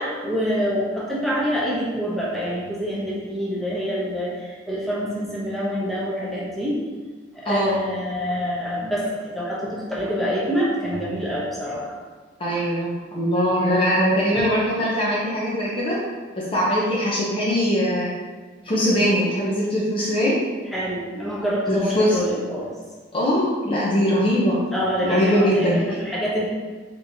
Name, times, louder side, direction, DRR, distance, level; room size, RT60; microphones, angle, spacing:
voice 1, 0.0-6.8 7.3-12.0 20.7-22.7 24.7-26.5, equal, ahead, -7 dB, 0.8 m, -26 dB
voice 2, 7.5-7.8 12.4-16.0 16.4-18.1 18.6-20.4 21.7-22.2 23.1-24.6 25.0-25.8, equal, 30° left, -6 dB, 0.6 m, -21 dB
3.6 x 2.9 x 2.7 m, 1.4 s
head